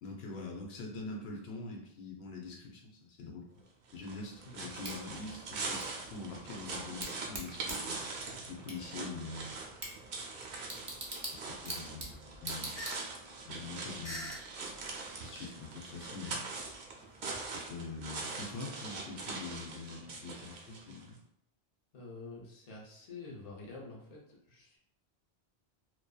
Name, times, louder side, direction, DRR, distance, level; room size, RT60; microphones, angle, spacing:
voice 1, 0.0-3.5 3.9-8.0 8.5-9.5 10.7-10.9 11.3-12.8 13.4-14.4 15.2-16.4 17.5-21.2, left 3 dB, 80° left, -1 dB, 0.8 m, -44 dB
sound 1, 3.9-21.1, right 3 dB, 70° right, 0.7 m, -42 dB
Bicycle / Tick, 4.8-13.4, right 2 dB, 35° right, 0.4 m, -45 dB
sound 2, 12.7-13.0 13.3-13.4 14.0-14.7 15.5-15.6 16.6-18.4, equal, 20° left, 0.8 m, -44 dB
voice 2, 21.9-24.8, left 3 dB, 45° left, -3 dB, 0.7 m, -48 dB
2.6 x 2.2 x 2.2 m, 0.72 s
omnidirectional pair, 1.0 m